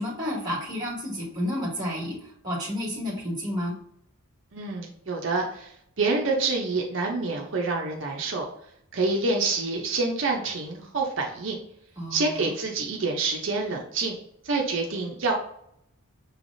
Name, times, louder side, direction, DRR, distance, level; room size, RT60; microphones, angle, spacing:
voice 1, 0.0-3.7 12.0-12.5, left 1 dB, 20° right, -3 dB, 1.6 m, -31 dB
voice 2, 4.5-8.5 8.9-11.6 12.1-14.2 14.4-15.3, right 3 dB, 60° right, 0 dB, 0.6 m, -27 dB
6.2 x 3.3 x 2.6 m, 0.73 s
head